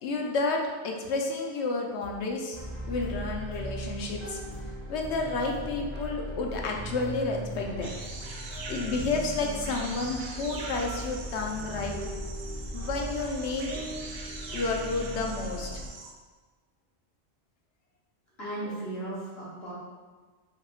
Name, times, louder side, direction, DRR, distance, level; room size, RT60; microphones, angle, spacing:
voice 1, 0.0-2.6 2.8-4.4 4.9-7.9 8.5-12.0 12.7-13.7 14.5-15.8, left 3 dB, 85° left, 1 dB, 0.9 m, -31 dB
sound 1, 2.0-2.2 2.5-2.7 3.0-3.2 3.5-3.7 4.0-4.2 4.5-4.7 5.0-5.2 5.5-11.1, left 1 dB, 45° left, 0.6 m, -50 dB
sound 2, 2.6-15.9, right 1 dB, ahead, 1.1 m, -38 dB
sound 3, 7.8-16.1, right 3 dB, 90° right, 0.9 m, -42 dB
voice 2, 18.4-19.7, right 2 dB, 65° left, -9 dB, 1.4 m, -36 dB
5.3 x 3.5 x 2.4 m, 1.4 s
omnidirectional pair, 1.1 m